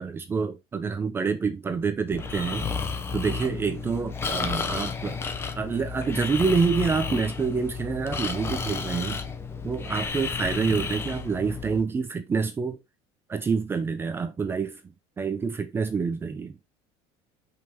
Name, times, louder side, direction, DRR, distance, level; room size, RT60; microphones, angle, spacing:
voice 1, 0.0-2.7 3.1-5.2 5.5-9.2 9.6-12.8 13.3-14.8 15.2-16.6, right 5 dB, 15° right, 0.7 m, -27 dB
Breathing, 2.1-11.8, left 5 dB, 20° left, 1.0 m, -32 dB
5.8 x 5.3 x 5.0 m
cardioid pair, 160°, 14 cm